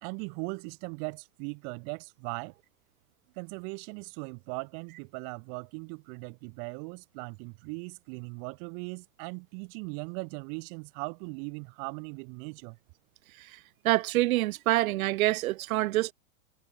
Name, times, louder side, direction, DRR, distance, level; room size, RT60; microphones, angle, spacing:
voice 1, 0.0-2.5 3.4-12.8, right 40 dB or more, 25° right, 0.4 m, -39 dB
voice 2, 13.8-16.1, right 17 dB, 75° right, 0.5 m, -26 dB
supercardioid pair, 145°, 42 cm